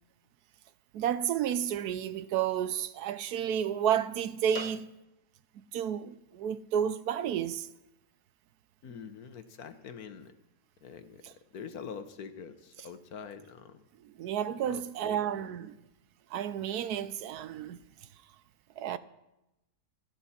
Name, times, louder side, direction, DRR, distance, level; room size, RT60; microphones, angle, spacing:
voice 1, 0.9-4.8 5.5-7.7 11.2-11.3 14.0-15.7 16.3-17.8 18.8-19.0, right 9 dB, 80° right, 1.2 m, -31 dB
voice 2, 8.8-10.3 10.8-11.2 11.5-13.8 14.6-15.4, left 6 dB, 70° left, 1.5 m, -44 dB
27.0 x 9.3 x 4.3 m
omnidirectional pair, 1.7 m